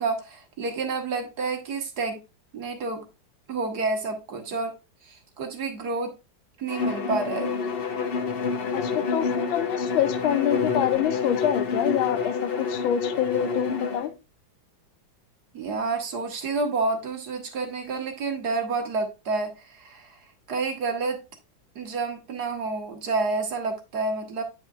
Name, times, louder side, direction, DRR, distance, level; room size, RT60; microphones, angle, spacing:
voice 1, 0.0-2.2 2.5-3.0 3.5-4.7 5.0-6.1 6.6-7.5 15.5-20.2 20.5-21.2 21.7-24.4, right 3 dB, 55° right, 1.6 m, -29 dB
Bowed string instrument, 6.7-14.1, left 5 dB, 60° left, 0.6 m, -28 dB
voice 2, 8.7-14.1, left 10 dB, 90° left, 1.4 m, -26 dB
8.8 x 5.6 x 2.4 m
omnidirectional pair, 2.1 m